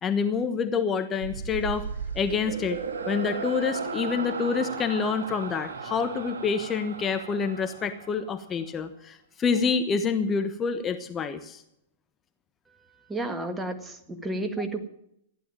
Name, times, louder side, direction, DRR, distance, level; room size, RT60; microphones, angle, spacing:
voice 1, 0.0-1.9 2.1-2.8 3.1-11.6, left 5 dB, 20° left, 8 dB, 1.2 m, -27 dB
sound 1, 1.2-8.6, right 5 dB, 70° right, 2.0 m, -35 dB
voice 2, 12.7-14.9, right 2 dB, 10° right, 7 dB, 1.8 m, -32 dB
15.0 x 11.0 x 7.4 m, 0.77 s
figure-of-eight pair, 110°, 0 cm